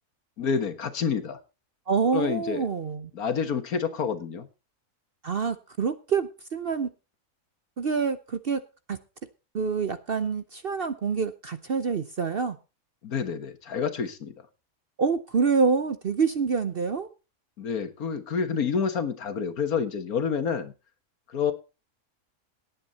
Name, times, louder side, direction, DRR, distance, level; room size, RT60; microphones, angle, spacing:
voice 1, 0.4-1.4 2.1-2.6 3.1-4.5 13.0-14.3 17.6-20.7 21.3-21.5, left 6 dB, 70° left, 9 dB, 1.9 m, -28 dB
voice 2, 1.9-3.1 5.2-6.9 7.8-8.6 8.9-9.0 9.5-12.6 15.0-17.1, right 5 dB, 50° right, 11 dB, 0.8 m, -26 dB
18.0 x 9.0 x 4.1 m, 0.31 s
omnidirectional pair, 1.6 m